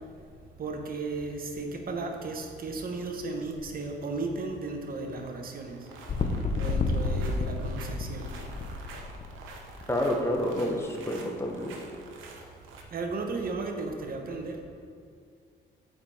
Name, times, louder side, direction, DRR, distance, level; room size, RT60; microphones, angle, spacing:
voice 1, 0.6-5.8 6.6-8.3 12.9-14.6, right 3 dB, 45° right, 3 dB, 1.0 m, -35 dB
sound 1, 3.4-3.6 3.9-4.2 4.5-5.4 5.7-12.8, right 3 dB, 85° right, 0.9 m, -48 dB
sound 2, 6.1-9.8 10.4-10.5, left 3 dB, 35° left, 0.7 m, -30 dB
voice 2, 9.9-11.8, left 1 dB, 15° left, 0 dB, 1.0 m, -29 dB
7.9 x 4.9 x 4.3 m, 2.3 s
cardioid pair, 90°, 20 cm